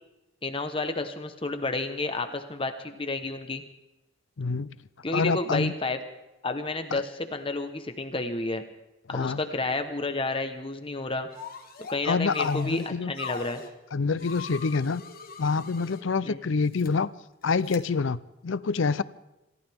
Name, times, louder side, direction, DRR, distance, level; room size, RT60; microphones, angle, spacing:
voice 1, 0.4-3.6 5.0-6.0 6.4-8.6 9.1-11.3 11.9-13.6 16.2-16.4, left 2 dB, 25° left, 8 dB, 1.1 m, -31 dB
voice 2, 4.4-4.7 5.1-5.7 6.9-7.0 9.1-9.4 12.1-13.1 13.9-15.0 15.4-17.1 17.4-19.0, left 4 dB, 70° left, 18 dB, 0.5 m, -26 dB
sound 1, 11.3-12.0 12.3-13.7 14.2-16.0 16.6-16.9 17.6-17.8, left 4 dB, 45° left, 1.6 m, -40 dB
27.5 x 15.0 x 3.6 m, 0.97 s
head